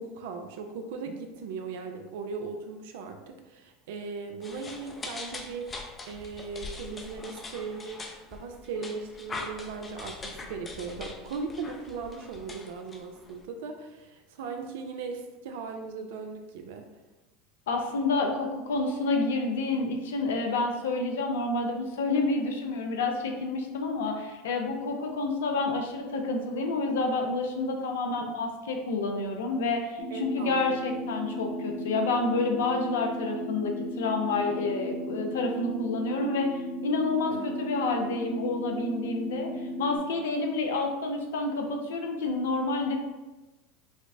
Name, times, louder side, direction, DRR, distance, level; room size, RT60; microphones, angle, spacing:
voice 1, 0.0-8.0 8.3-16.9 28.1-28.3 30.1-30.8 37.3-37.5, right 4 dB, 70° right, 5 dB, 0.3 m, -38 dB
sound 1, 4.4-13.4, left 3 dB, 25° left, 0.5 m, -42 dB
voice 2, 17.7-33.7 34.0-39.5 39.8-43.0, left 3 dB, 80° left, 3 dB, 0.5 m, -29 dB
sound 2, 30.0-40.0, equal, 40° right, 0.9 m, -35 dB
4.8 x 2.0 x 2.6 m, 1.1 s
hypercardioid pair, 90°, 0 cm